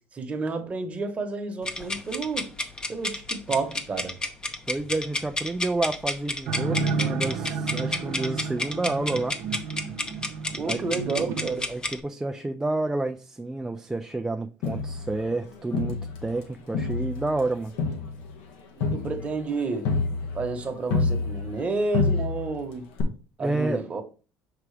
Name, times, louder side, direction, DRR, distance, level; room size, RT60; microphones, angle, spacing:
voice 1, 0.1-2.5 2.9-4.2 10.5-11.7 18.8-19.9 20.3-22.9 23.4-24.0, right 3 dB, 25° right, 1.1 m, -30 dB
sound 1, 1.6-12.0, left 2 dB, 15° left, 0.7 m, -31 dB
voice 2, 4.7-9.4 10.7-10.8 11.7-17.7 23.4-23.9, right 2 dB, 10° right, 0.4 m, -29 dB
sound 2, 6.5-11.5, right 5 dB, 65° right, 0.8 m, -31 dB
Crowd, 14.6-16.4 16.7-21.7 21.9-22.6 23.0-23.1, left 4 dB, 85° left, 1.4 m, -28 dB
5.8 x 4.8 x 3.3 m
cardioid pair, 120°, 5 cm